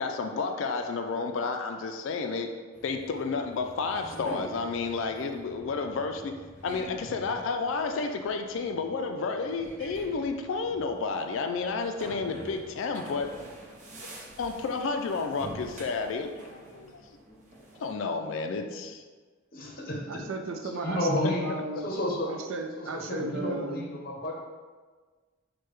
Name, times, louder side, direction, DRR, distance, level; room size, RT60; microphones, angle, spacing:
voice 1, 0.0-2.5 2.8-6.3 6.6-13.3 14.0-14.1 14.4-17.0 17.8-19.0 21.2-21.3, left 4 dB, 70° left, 5 dB, 0.3 m, -31 dB
sound 1, 2.7-17.9, right 1 dB, 35° right, 0.7 m, -47 dB
voice 2, 19.5-20.2 20.7-21.5 21.8-22.3 22.8-24.4, left 1 dB, 45° left, -1 dB, 0.7 m, -31 dB
voice 3, 20.1-21.9 22.3-23.8, right 3 dB, 80° right, 4 dB, 0.4 m, -35 dB
6.4 x 2.2 x 3.1 m, 1.4 s
head